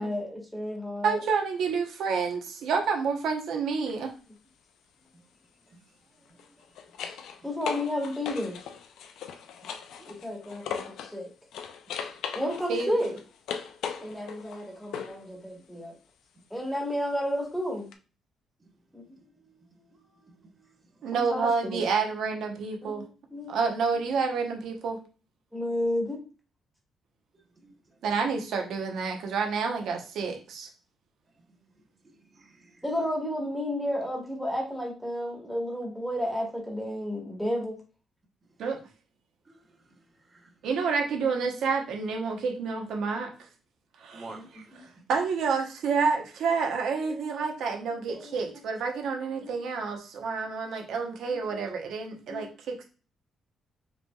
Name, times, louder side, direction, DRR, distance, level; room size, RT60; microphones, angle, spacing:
voice 1, 0.0-1.2 7.4-8.6 10.1-11.3 12.3-13.2 14.0-15.9 16.5-17.9 18.9-19.0 21.1-21.8 22.8-23.6 25.5-26.2 32.8-37.8 44.3-44.4 47.1-47.3 48.1-48.4 49.4-49.6 51.3-51.6 52.3-52.4, left 1 dB, ahead, 1.6 m, -32 dB
voice 2, 1.0-4.1 12.7-12.9 21.0-23.1 23.5-25.0 28.0-30.7 38.6-38.8 40.6-43.3 44.0-44.2 45.1-52.8, right 5 dB, 75° right, 1.0 m, -29 dB
sound 1, 3.7-4.0 6.3-11.2 11.5-15.3 17.9-18.0, left 7 dB, 85° left, 0.5 m, -39 dB
voice 3, 6.1-6.8 9.3-10.1 11.9-12.0 15.7-15.9 18.6-18.7 19.9-20.2 20.9-21.1 23.3-23.4 23.9-24.0 27.3-28.0 31.3-31.4 31.7-32.8 39.4-40.5 44.1-45.0, right 2 dB, 25° right, 1.0 m, -53 dB
5.1 x 3.1 x 2.4 m
cardioid pair, 135°, 0 cm